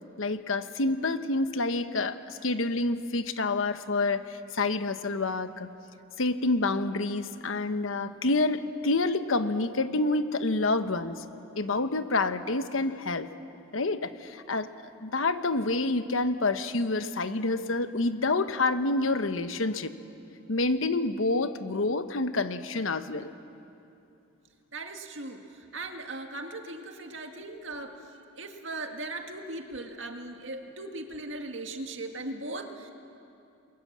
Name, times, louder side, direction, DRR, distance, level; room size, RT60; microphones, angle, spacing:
voice 1, 0.2-5.7 6.2-11.2 11.6-13.3 13.7-14.7 15.0-19.9 20.5-23.3, left 2 dB, 85° left, 10 dB, 1.1 m, -28 dB
voice 2, 24.7-32.9, right 2 dB, 65° right, 4 dB, 2.0 m, -39 dB
28.5 x 22.5 x 7.5 m, 2.7 s
head